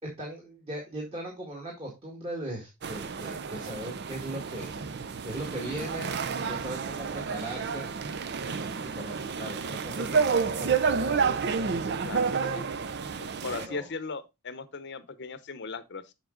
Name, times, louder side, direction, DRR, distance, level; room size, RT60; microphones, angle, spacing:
voice 1, 0.0-4.7 5.2-6.1 6.4-7.9 8.6-11.4 13.5-13.9, right 1 dB, 25° right, 1.9 m, -39 dB
sound 1, 2.8-13.7, right 5 dB, 50° right, 0.5 m, -30 dB
voice 2, 12.0-12.7 13.2-16.1, left 4 dB, 50° left, 0.8 m, -38 dB
7.4 x 5.4 x 3.8 m
head